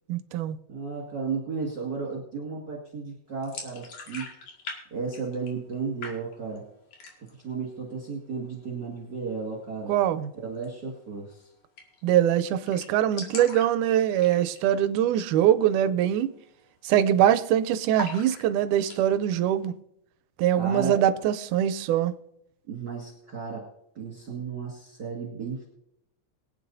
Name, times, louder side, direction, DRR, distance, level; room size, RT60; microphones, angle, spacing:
voice 1, 0.1-0.6 9.9-10.3 12.0-16.3 16.8-19.7 20.4-22.1, right 11 dB, 90° right, 2.1 m, -23 dB
voice 2, 0.7-4.3 4.9-6.7 7.4-10.0 10.3-11.5 20.5-21.0 22.7-23.7 24.0-25.7, right 5 dB, 40° right, 2.3 m, -34 dB
sound 1, 3.4-4.8 5.0-5.7 6.0-6.6 6.9-7.4 7.8-7.9 8.2-8.8 10.5-10.7 11.0-11.1 11.3-11.4 11.8-12.1 12.4-12.5 12.7-14.7 15.1-15.3 15.7-15.8 16.3-16.6 16.9-17.5 17.9-19.0, left 3 dB, 70° left, 3.4 m, -40 dB
23.0 x 9.0 x 2.7 m
omnidirectional pair, 3.5 m